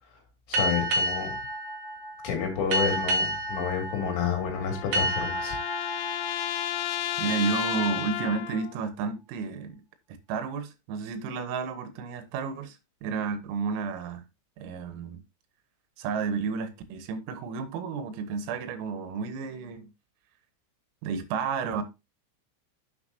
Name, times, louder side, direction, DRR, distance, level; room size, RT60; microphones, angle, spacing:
voice 1, 0.5-1.4 2.2-5.6, left 7 dB, 70° left, 4.8 m, -29 dB
sound 1, 0.5-7.8, right 1 dB, 60° right, 2.3 m, -31 dB
sound 2, 4.0-8.8, left 13 dB, 85° left, 2.6 m, -33 dB
voice 2, 7.2-9.8 10.3-14.2 14.6-15.2 16.0-19.9 21.0-21.8, right 5 dB, 85° right, 3.8 m, -31 dB
9.9 x 6.9 x 2.8 m
omnidirectional pair, 5.9 m